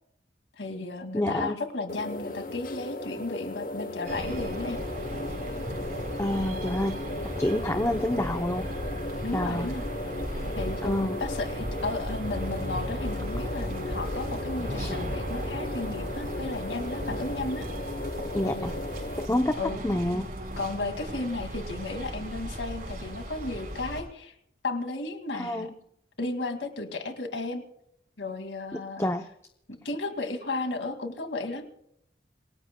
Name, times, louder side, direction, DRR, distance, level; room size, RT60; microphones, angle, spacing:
voice 1, 0.6-4.8 6.5-6.8 7.0-7.1 9.2-9.8 10.6-17.7 18.4-18.7 19.5-19.8 20.6-24.3 24.6-25.7 26.2-27.6 28.2-29.1 29.7-31.7, left 2 dB, 90° left, 6 dB, 2.2 m, -34 dB
voice 2, 1.1-1.6 6.2-7.1 7.3-8.7 9.3-9.7 10.8-11.2 14.8-14.9 18.3-18.7 19.2-19.6 19.8-20.3 25.3-25.7 29.0-29.3, left 1 dB, 15° left, 7 dB, 0.6 m, -28 dB
sound 1, 1.9-19.3, left 2 dB, 50° left, 0.9 m, -36 dB
sound 2, 4.0-24.0, equal, 50° right, 4.3 m, -36 dB
27.5 x 18.0 x 2.2 m, 0.74 s
head